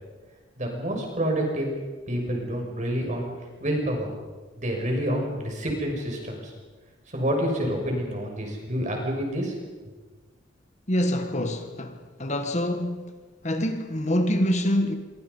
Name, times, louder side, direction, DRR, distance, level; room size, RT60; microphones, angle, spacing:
voice 1, 0.6-1.7 2.1-3.3 3.6-4.1 4.6-6.5 7.1-9.6, equal, 40° right, 6.5 m, -28 dB
voice 2, 10.9-13.1 13.4-15.0, equal, 35° left, 1.6 m, -26 dB
27.0 x 24.5 x 5.5 m
head